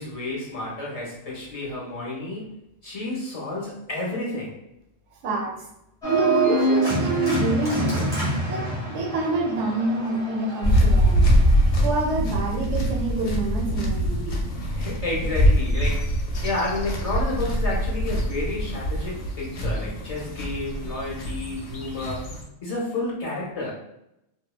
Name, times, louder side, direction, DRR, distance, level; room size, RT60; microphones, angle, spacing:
voice 1, 0.0-2.6 2.8-4.6 14.8-23.7, left 2 dB, 40° left, -4 dB, 0.5 m, -31 dB
Organ, 6.0-11.7, right 1 dB, 5° left, 0.8 m, -26 dB
voice 2, 6.1-8.1 8.5-8.6 8.9-11.3 11.8-14.3, right 2 dB, 70° right, 0 dB, 0.9 m, -26 dB
sound 1, 10.6-22.4, equal, 70° left, 0.8 m, -23 dB
2.7 x 2.0 x 2.3 m, 0.84 s
omnidirectional pair, 1.3 m